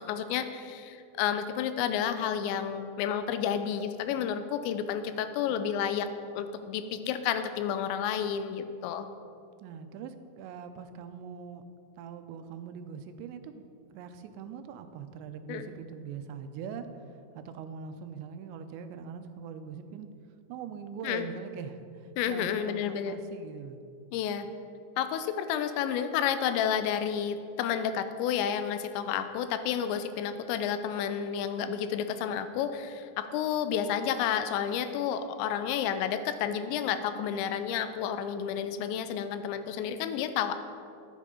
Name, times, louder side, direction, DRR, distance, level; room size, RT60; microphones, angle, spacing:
voice 1, 0.0-6.1 6.3-9.1 15.5-15.7 21.0-21.3 22.2-23.1 24.1-24.5 25.0-40.6, left 8 dB, 90° left, 10 dB, 2.9 m, -31 dB
voice 2, 9.6-11.6 12.0-13.6 13.9-16.9 17.3-20.1 20.5-23.8, right 7 dB, 90° right, 9 dB, 2.9 m, -42 dB
13.5 x 8.3 x 3.7 m, 2.5 s
omnidirectional pair, 5.0 m